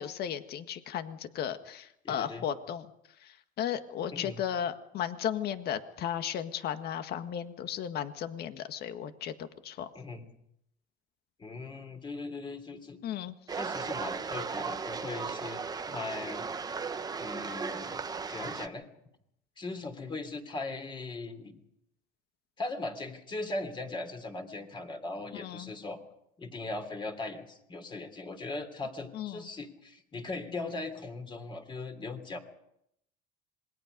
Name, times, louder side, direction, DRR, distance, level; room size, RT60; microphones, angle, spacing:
voice 1, 0.0-2.8 3.2-9.9 13.0-13.3 25.3-25.7 29.1-29.5, left 9 dB, 50° left, 9 dB, 1.7 m, -35 dB
voice 2, 2.0-2.5 4.1-4.4 9.9-10.3 11.4-13.0 13.5-15.6 15.9-16.4 17.2-18.0 18.3-18.8 19.6-21.6 22.6-26.0 26.4-32.4, left 3 dB, 20° left, 6 dB, 3.3 m, -39 dB
sound 1, 13.5-18.7, right 5 dB, 20° right, 1.0 m, -36 dB
27.0 x 21.0 x 5.3 m, 0.77 s
cardioid pair, 125°, 21 cm